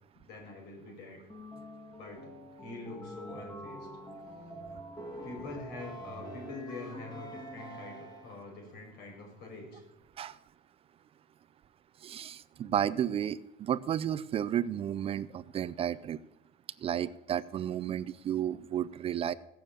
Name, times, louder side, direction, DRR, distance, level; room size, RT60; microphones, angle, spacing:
voice 1, 0.2-1.3 1.9-3.9 5.2-9.8, left 2 dB, 70° left, 1 dB, 5.9 m, -45 dB
sound 1, 1.3-8.6, equal, 25° left, 2.6 m, -45 dB
voice 2, 12.0-16.2 16.8-19.3, right 10 dB, 35° right, 17 dB, 0.4 m, -32 dB
16.5 x 7.0 x 8.9 m, 0.89 s
cardioid pair, 155°, 17 cm